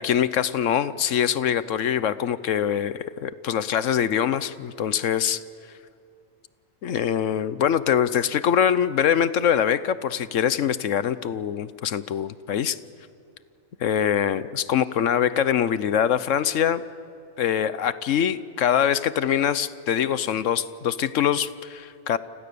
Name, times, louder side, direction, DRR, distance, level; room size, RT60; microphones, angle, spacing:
voice 1, 0.0-5.4 6.8-12.8 13.8-16.8 17.4-22.2, left 9 dB, 70° left, 15 dB, 1.1 m, -23 dB
30.0 x 25.5 x 6.9 m, 2.6 s
omnidirectional pair, 1.4 m